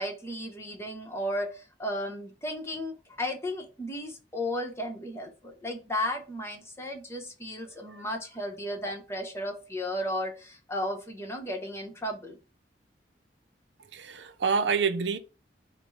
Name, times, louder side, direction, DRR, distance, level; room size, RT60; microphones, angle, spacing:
voice 1, 0.0-12.4, left 1 dB, 15° left, 0.9 m, -34 dB
voice 2, 13.9-15.2, right 5 dB, 85° right, 0.6 m, -27 dB
5.1 x 2.1 x 4.6 m
head